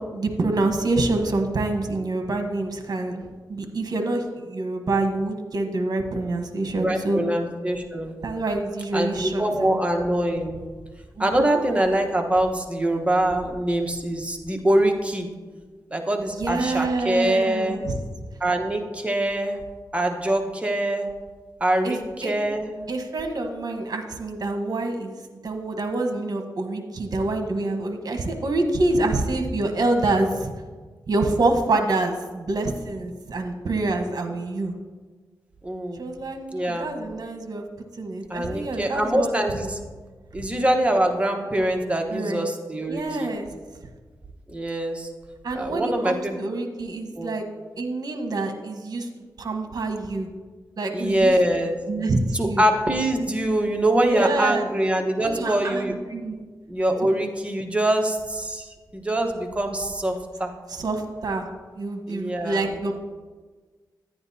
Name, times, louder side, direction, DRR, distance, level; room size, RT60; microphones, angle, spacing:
voice 1, 0.1-7.2 8.2-9.8 11.2-11.6 16.3-18.0 21.8-22.3 22.9-30.5 31.1-34.7 36.0-37.6 38.0-39.3 40.4-40.5 42.1-42.4 42.9-43.4 45.4-47.4 47.8-49.1 49.4-50.3 50.8-51.3 51.9-52.6 54.1-54.7 55.2-56.5 60.7-61.5 61.8-62.9, right 2 dB, 60° right, 5 dB, 1.1 m, -26 dB
voice 2, 6.8-8.2 8.9-10.6 11.2-15.3 15.9-17.8 18.4-19.6 19.9-21.1 21.6-22.0 22.2-22.8 35.6-36.0 36.5-36.9 38.3-39.8 40.3-43.3 44.5-45.1 45.5-46.4 47.2-47.4 50.9-51.7 52.3-55.9 56.7-60.5 62.1-62.7, right 1 dB, 15° right, 3 dB, 1.1 m, -24 dB
10.0 x 9.5 x 2.7 m, 1.4 s
cardioid pair, 75°, 7 cm